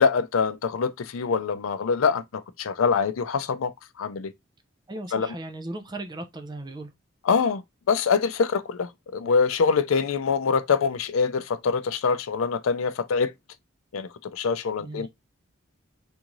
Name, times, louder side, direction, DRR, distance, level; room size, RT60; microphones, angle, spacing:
voice 1, 0.0-4.3 5.1-5.3 7.3-7.6 7.9-13.3 13.9-15.1, left 5 dB, 85° left, 0.4 m, -24 dB
voice 2, 4.9-6.9 14.8-15.1, right 2 dB, 20° right, 0.5 m, -37 dB
3.6 x 2.6 x 2.9 m
head